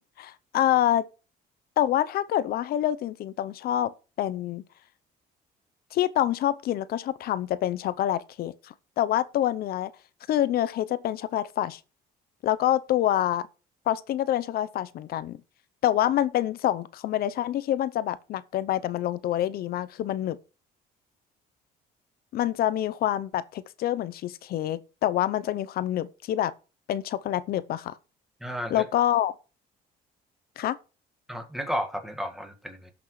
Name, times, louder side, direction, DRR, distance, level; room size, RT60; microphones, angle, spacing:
voice 1, 0.2-1.0 1.8-4.6 5.9-9.9 10.3-11.8 12.4-13.5 13.9-15.4 15.8-20.4 22.3-26.5 26.9-28.0 28.7-29.3 30.6-30.8, left 12 dB, 65° left, 0.7 m, -26 dB
voice 2, 28.4-28.9 31.3-32.9, equal, ahead, 1.7 m, -33 dB
17.5 x 6.1 x 3.2 m
cardioid pair, 110°, 17 cm